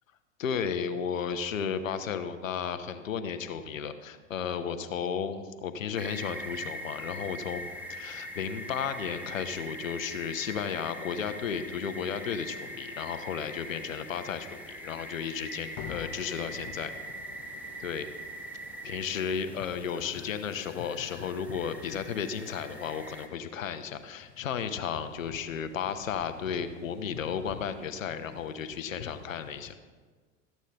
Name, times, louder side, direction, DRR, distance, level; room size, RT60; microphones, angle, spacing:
voice 1, 0.4-7.6 7.9-16.9 17.8-18.1 18.8-29.7, left 7 dB, 80° left, 10 dB, 0.7 m, -34 dB
sound 1, 5.9-23.3, equal, 5° right, 1.1 m, -42 dB
sound 2, 13.6-14.5 14.8-15.0 15.3-15.5 15.8-29.7, left 10 dB, 45° left, 0.5 m, -49 dB
13.0 x 8.2 x 3.4 m, 1.5 s
figure-of-eight pair, 80°, 39 cm